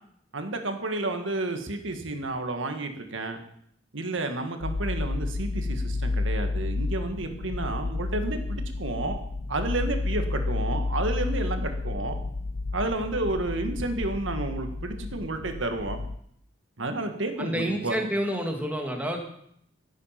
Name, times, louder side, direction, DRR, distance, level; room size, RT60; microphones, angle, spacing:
voice 1, 0.3-3.4 3.9-9.2 9.5-12.2 12.7-16.0 16.8-18.0, right 2 dB, 90° right, 6 dB, 1.7 m, -31 dB
sound 1, 4.6-16.2, left 3 dB, 65° left, 0.5 m, -31 dB
voice 2, 17.4-19.2, equal, 10° right, 2 dB, 1.9 m, -28 dB
15.5 x 8.3 x 5.8 m, 0.70 s
head